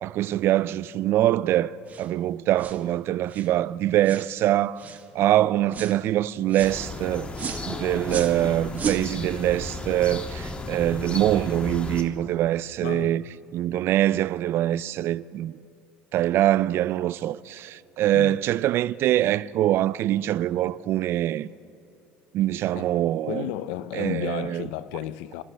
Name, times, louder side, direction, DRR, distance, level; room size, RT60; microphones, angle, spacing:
voice 1, 0.0-4.8 5.1-7.3 7.6-13.2 13.5-15.5 16.1-21.5 22.3-23.4 23.9-24.7, right 13 dB, 55° right, 0.4 m, -24 dB
sound 1, 1.9-2.1 2.6-2.8 3.3-3.5 4.0-4.3 4.8-5.1 5.7-6.0 6.5-6.8 7.4-7.6 8.1-8.4 8.7-9.1, right 6 dB, 35° right, 1.2 m, -33 dB
sound 2, 6.6-12.0, left 3 dB, 25° left, 1.5 m, -34 dB
voice 2, 12.8-13.2 18.1-18.4 22.7-25.4, left 13 dB, 80° left, 0.6 m, -33 dB
28.0 x 14.0 x 3.4 m
supercardioid pair, 105°, 5 cm